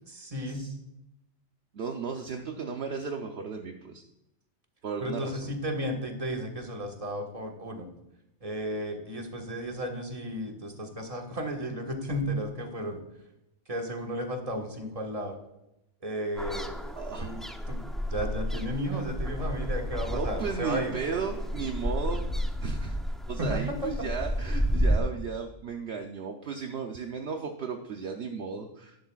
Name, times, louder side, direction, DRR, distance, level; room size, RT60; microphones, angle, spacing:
voice 1, 0.1-0.7 5.0-7.9 8.4-13.0 13.7-15.4 16.0-16.9 17.2-17.4 17.7-17.8 18.1-20.9 23.4-23.9, equal, 30° right, 3 dB, 1.6 m, -33 dB
voice 2, 1.7-4.0 4.8-5.5 17.0-17.3 20.1-23.0 23.3-29.0, right 5 dB, 60° right, 4 dB, 1.0 m, -35 dB
sound 1, 16.4-25.0, equal, ahead, 0.5 m, -31 dB
12.0 x 11.0 x 2.4 m, 0.87 s
omnidirectional pair, 1.3 m